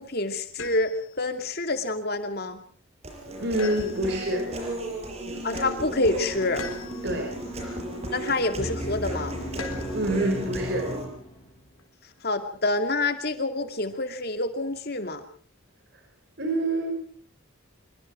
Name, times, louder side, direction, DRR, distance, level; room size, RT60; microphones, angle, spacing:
voice 1, 0.0-2.6 5.4-6.6 8.1-9.4 12.2-15.2, left 2 dB, 50° left, 7 dB, 2.6 m, -27 dB
sound 1, 0.6-1.2 3.6-4.4 6.6-7.3 9.6-10.1 11.8-12.4, left 5 dB, 85° left, 3.9 m, -41 dB
Human voice, 3.0-11.1, right 1 dB, 30° right, 5.6 m, -35 dB
voice 2, 3.4-4.5 7.0-7.3 9.9-10.9 16.4-17.0, right 1 dB, 55° right, 3 dB, 5.3 m, -26 dB
sound 2, 6.2-11.8, equal, 30° left, 5.9 m, -38 dB
25.5 x 23.5 x 4.6 m, 0.43 s
head